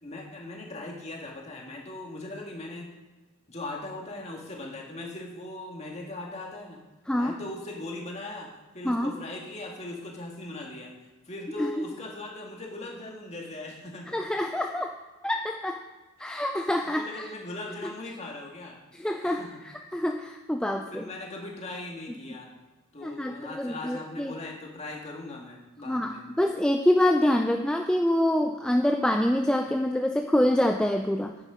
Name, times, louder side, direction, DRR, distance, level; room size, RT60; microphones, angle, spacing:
voice 1, 0.0-2.9 3.5-6.8 7.1-8.5 8.7-10.9 11.3-14.2 16.2-16.5 16.8-18.8 19.2-19.6 20.7-22.5 22.9-26.2, left 2 dB, 30° left, -1 dB, 2.0 m, -39 dB
voice 2, 14.1-15.0 15.2-15.8 16.2-17.3 18.9-21.0 23.0-24.3 25.9-31.3, left 1 dB, 5° left, 3 dB, 0.4 m, -26 dB
9.9 x 9.8 x 5.0 m, 1.2 s
head